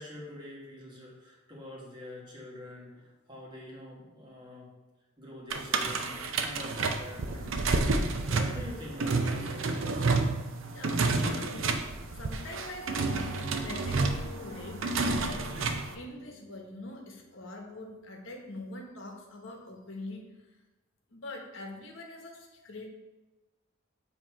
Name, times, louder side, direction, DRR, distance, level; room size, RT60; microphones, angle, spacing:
voice 1, 0.0-4.7 5.2-10.1 10.9-11.4, left 1 dB, 25° right, -5 dB, 1.5 m, -45 dB
sound 1, 5.5-15.9, right 3 dB, 80° right, 0.5 m, -30 dB
voice 2, 10.7-11.7 12.1-13.4 13.6-14.8 15.2-20.2 21.1-22.9, left 2 dB, 75° left, 1 dB, 1.0 m, -44 dB
sound 2, 12.5-17.6, equal, 35° left, 0.7 m, -48 dB
7.6 x 2.9 x 4.6 m, 1.1 s
head